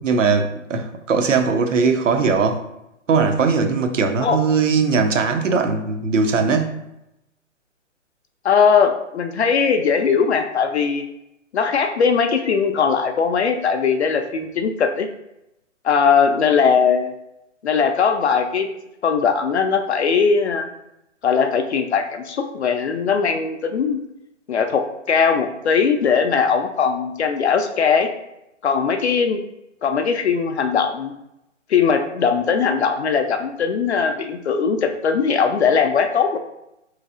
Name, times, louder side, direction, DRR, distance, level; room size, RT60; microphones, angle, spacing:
voice 1, 0.0-2.6 3.1-6.8, right 4 dB, 75° right, 6 dB, 0.6 m, -19 dB
voice 2, 8.4-11.0 11.5-15.1 15.8-17.1 17.6-18.7 19.0-20.7 21.2-24.0 24.5-28.1 28.6-29.4 29.8-31.1 31.7-36.4, left 6 dB, 60° left, 6 dB, 0.5 m, -19 dB
4.0 x 3.1 x 2.4 m, 0.87 s
figure-of-eight pair, 130°, 38 cm